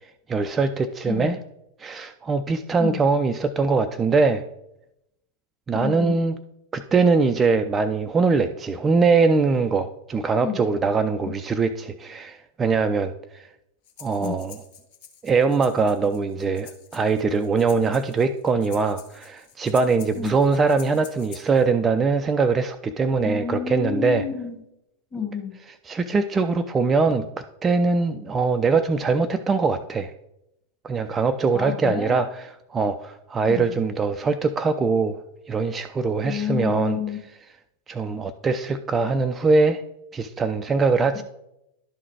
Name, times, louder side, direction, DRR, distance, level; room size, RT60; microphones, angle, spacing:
voice 1, 0.3-1.4 1.8-4.4 5.7-6.4 6.7-13.1 14.0-14.6 15.2-24.3 25.9-27.3 27.6-30.1 30.8-35.2 35.5-37.0 37.9-39.8 40.1-41.2, right 4 dB, 20° right, 7 dB, 0.4 m, -22 dB
voice 2, 5.7-6.2 10.4-10.6 14.2-14.4 20.2-20.3 23.2-24.6 25.1-25.5 31.5-32.2 33.5-33.7 36.2-37.2, left 8 dB, 25° left, 2 dB, 1.6 m, -29 dB
Breathing, 13.8-21.6, left 8 dB, 50° left, 0.9 m, -48 dB
11.5 x 3.9 x 4.6 m, 0.85 s
figure-of-eight pair, 90°, 0 cm